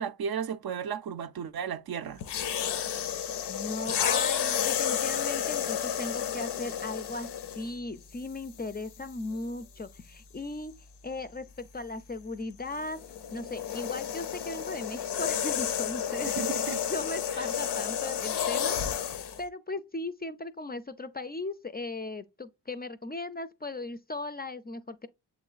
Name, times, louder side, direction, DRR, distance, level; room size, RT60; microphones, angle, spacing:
voice 1, 0.0-2.2 16.4-16.8 17.4-17.5, right 7 dB, 60° right, 0.5 m, -34 dB
sound 1, 2.2-7.7 8.6-8.8 12.7-19.4, left 9 dB, 75° left, 0.6 m, -31 dB
voice 2, 3.5-7.3 7.6-10.7 11.0-13.0 13.3-16.4 16.9-18.8 19.4-25.1, left 2 dB, 25° left, 0.3 m, -37 dB
7.2 x 3.0 x 2.3 m
cardioid pair, 60°, 41 cm